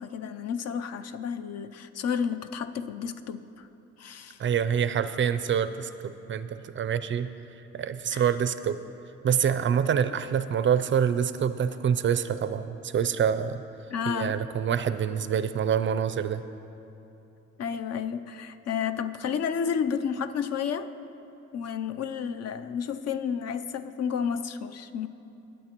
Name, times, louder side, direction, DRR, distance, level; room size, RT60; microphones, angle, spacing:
voice 1, 0.0-3.7 4.0-4.4 8.1-8.3 13.9-14.4 17.6-20.9 21.5-25.1, left 7 dB, 55° left, 10 dB, 0.5 m, -31 dB
voice 2, 4.4-7.3 7.7-8.8 9.2-13.6 14.1-16.4, right 8 dB, 40° right, 12 dB, 0.4 m, -26 dB
18.0 x 8.2 x 3.0 m, 3.0 s
cardioid pair, 90°, 30 cm